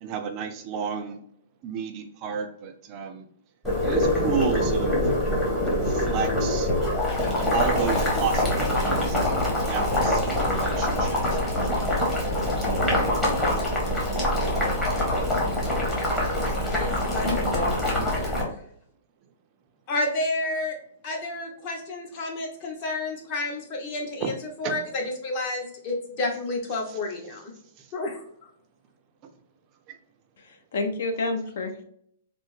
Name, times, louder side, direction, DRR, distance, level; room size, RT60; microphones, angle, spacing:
voice 1, 0.0-1.2 1.6-3.2 3.8-5.0 5.9-6.7 7.5-11.2 11.5-12.0 18.0-18.1 24.2-24.3 24.6-24.8, right 6 dB, 30° right, 5 dB, 0.4 m, -31 dB
Boiling, 3.6-18.4, left 1 dB, 10° left, 0.9 m, -24 dB
voice 2, 17.1-17.7 19.9-20.7 21.0-27.5 27.9-28.5, left 2 dB, 35° left, 1 dB, 0.8 m, -30 dB
voice 3, 30.4-31.8, left 3 dB, 65° left, 5 dB, 0.6 m, -29 dB
3.3 x 2.0 x 3.1 m, 0.67 s
hypercardioid pair, 160°, 0 cm